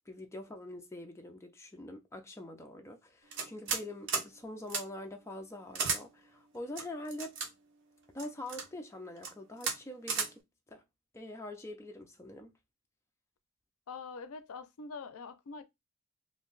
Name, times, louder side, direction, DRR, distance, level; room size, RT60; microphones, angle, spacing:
voice 1, 0.1-7.3 8.1-10.4 10.7-10.8 11.1-12.5, left 1 dB, 15° left, 0.4 m, -44 dB
sound 1, 3.3-3.8 4.1-4.3 4.7-4.8 5.7-6.0 6.8-7.5 8.2-8.7 9.2-9.3 9.6-9.8 10.1-10.3, right 5 dB, 55° right, 0.8 m, -33 dB
voice 2, 13.9-15.6, left 4 dB, 80° left, 0.4 m, -44 dB
2.6 x 2.2 x 3.8 m
head